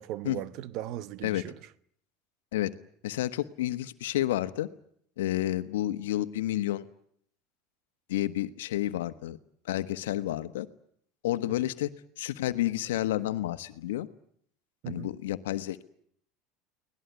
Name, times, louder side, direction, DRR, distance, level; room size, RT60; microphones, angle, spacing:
voice 1, 0.0-1.7 11.5-11.7 14.8-15.1, right 14 dB, 60° right, 1.0 m, -38 dB
voice 2, 3.0-4.7 5.2-6.9 8.1-9.4 9.7-10.7 11.2-11.9 12.2-14.1 14.9-15.8, left 14 dB, 90° left, 1.3 m, -30 dB
24.0 x 19.0 x 9.5 m
supercardioid pair, 110°, 0 cm